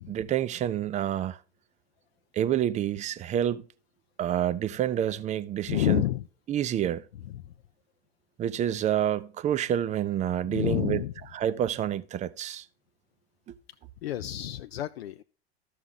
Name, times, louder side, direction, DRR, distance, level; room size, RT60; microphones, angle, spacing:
voice 1, 0.0-1.4 2.3-3.6 4.2-6.0 6.5-7.1 8.4-11.0 11.3-12.7 13.5-13.6, right 10 dB, 20° right, 0.5 m, -28 dB
voice 2, 5.7-6.3 7.3-7.5 10.5-11.1 14.0-15.2, left 13 dB, 70° left, 0.5 m, -29 dB
13.5 x 6.0 x 3.8 m
figure-of-eight pair, 85°, 33 cm